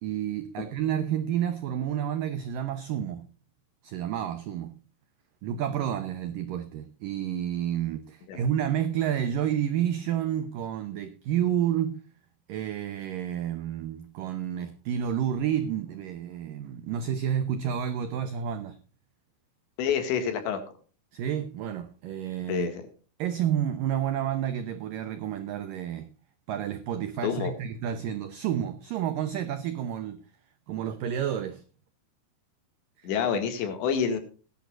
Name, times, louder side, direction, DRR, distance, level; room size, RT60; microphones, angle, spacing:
voice 1, 0.0-3.3 3.8-4.8 5.4-12.0 12.5-18.8 21.1-22.7 23.2-26.1 26.5-30.2 30.7-31.6 33.0-33.1, right 9 dB, 85° right, 1.9 m, -30 dB
voice 2, 19.8-20.6 22.5-22.8 27.2-27.5 33.0-34.2, left 7 dB, 85° left, 4.3 m, -27 dB
18.5 x 11.0 x 2.5 m
omnidirectional pair, 5.1 m